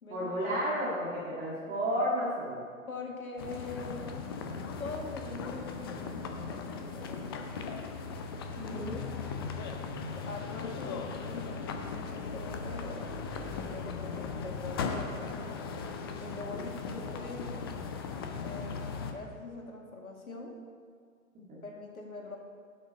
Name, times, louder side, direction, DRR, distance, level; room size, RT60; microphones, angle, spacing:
voice 1, 0.1-2.6 8.6-9.0 16.5-16.6 21.5-21.6, equal, 20° right, -9 dB, 2.2 m, -32 dB
voice 2, 2.9-4.2 4.8-7.9 10.1-13.1 13.3-15.3 16.2-17.6 18.2-18.8 19.1-20.5 21.6-22.4, left 3 dB, 80° left, 1 dB, 2.0 m, -43 dB
sound 1, 3.4-19.1, left 5 dB, 20° left, 0.4 m, -38 dB
12.0 x 6.5 x 5.2 m, 2.1 s
figure-of-eight pair, 120°, 42 cm